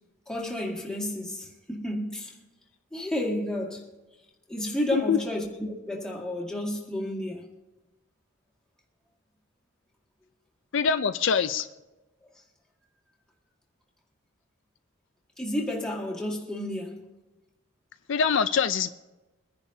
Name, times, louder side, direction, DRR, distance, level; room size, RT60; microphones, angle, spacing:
voice 1, 0.3-2.3 2.9-3.8 4.5-7.5 15.4-17.0, left 1 dB, 5° left, 1.9 m, -31 dB
voice 2, 10.7-11.7 18.1-18.9, left 6 dB, 60° left, 0.4 m, -24 dB
23.0 x 10.5 x 2.7 m
head